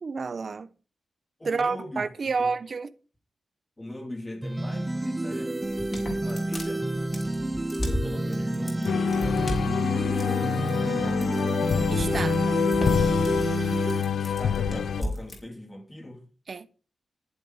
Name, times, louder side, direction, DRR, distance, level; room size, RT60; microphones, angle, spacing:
voice 1, 0.0-0.7 1.4-2.9 11.9-12.6 16.5-16.7, right 4 dB, 45° right, 0.9 m, -30 dB
voice 2, 1.4-2.5 3.8-6.9 7.9-11.6 14.2-16.3, left 1 dB, 15° left, 3.1 m, -40 dB
sound 1, 4.4-14.0, right 2 dB, 15° right, 0.7 m, -29 dB
sound 2, 5.6-15.4, left 1 dB, 30° left, 5.1 m, -34 dB
sound 3, 8.8-15.0, left 8 dB, 80° left, 0.6 m, -27 dB
11.5 x 11.0 x 4.9 m
wide cardioid pair, 135°, 0 cm